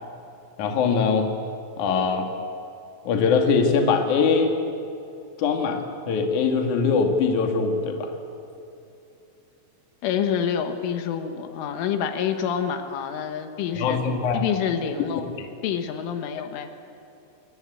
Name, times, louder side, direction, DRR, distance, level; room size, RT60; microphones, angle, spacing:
voice 1, 0.6-1.3 1.8-2.3 3.0-4.5 5.4-8.1 13.7-14.5 15.4-15.5, left 5 dB, 50° left, 4 dB, 2.8 m, -22 dB
voice 2, 10.0-14.0 14.3-15.3 15.6-16.7, left 8 dB, 80° left, 7 dB, 3.9 m, -27 dB
28.0 x 21.0 x 8.6 m, 2.7 s
omnidirectional pair, 5.6 m